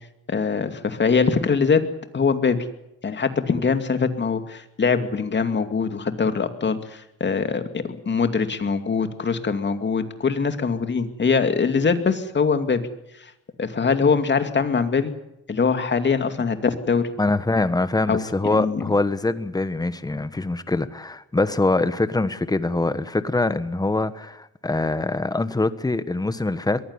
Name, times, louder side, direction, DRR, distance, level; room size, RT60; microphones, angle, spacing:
voice 1, 0.3-1.8 2.1-2.6 3.0-12.8 13.2-13.3 13.6-15.1 15.5-17.1 18.1-18.9, left 5 dB, 35° left, 8 dB, 2.5 m, -22 dB
voice 2, 17.2-26.8, left 2 dB, 15° left, 13 dB, 1.3 m, -23 dB
22.5 x 15.5 x 9.8 m, 0.88 s
cardioid pair, 90°, 30 cm